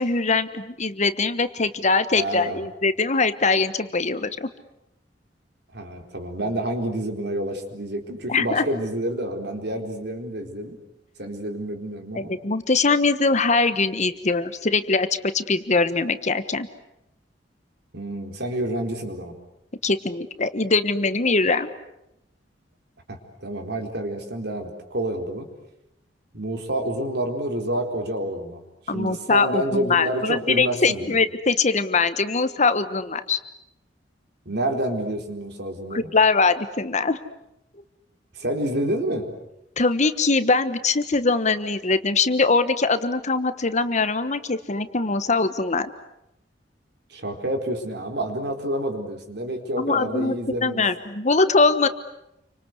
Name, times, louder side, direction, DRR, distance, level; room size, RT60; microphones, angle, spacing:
voice 1, 0.0-4.5 8.3-8.6 12.1-15.1 15.3-16.7 19.8-21.7 28.9-33.4 35.9-37.2 39.8-45.9 49.8-51.9, left 3 dB, 40° left, 12 dB, 1.3 m, -22 dB
voice 2, 2.1-2.7 5.7-10.8 11.2-12.3 17.9-19.3 23.1-25.5 26.3-28.6 28.9-31.1 34.5-36.1 38.3-39.3 47.1-50.8, right 1 dB, 65° right, 4 dB, 4.3 m, -28 dB
29.0 x 25.0 x 8.2 m, 0.85 s
head